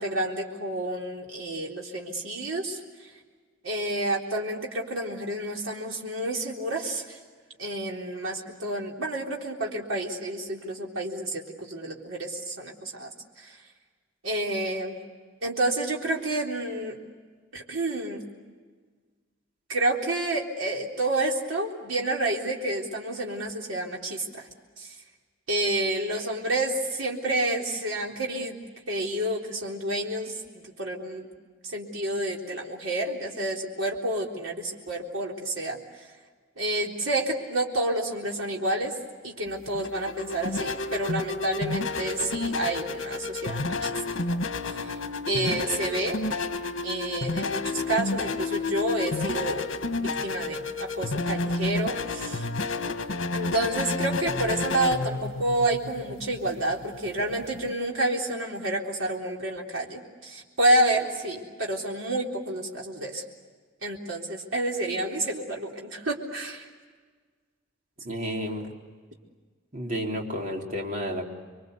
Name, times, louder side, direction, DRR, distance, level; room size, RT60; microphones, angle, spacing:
voice 1, 0.0-3.1 3.6-7.2 7.6-13.6 14.2-15.0 15.4-17.0 17.5-18.2 19.7-24.5 24.8-24.9 25.5-28.6 28.9-31.3 31.6-35.8 36.6-38.9 39.2-44.0 44.7-44.9 45.3-46.2 46.8-49.7 50.0-52.5 53.3-63.2 63.8-66.7, right 1 dB, 75° right, -1 dB, 3.8 m, -29 dB
sound 1, 39.5-57.7, left 3 dB, 65° left, 1.8 m, -30 dB
voice 2, 68.0-68.7 69.7-71.2, equal, 40° right, 1 dB, 3.8 m, -31 dB
28.5 x 23.5 x 8.1 m, 1.5 s
head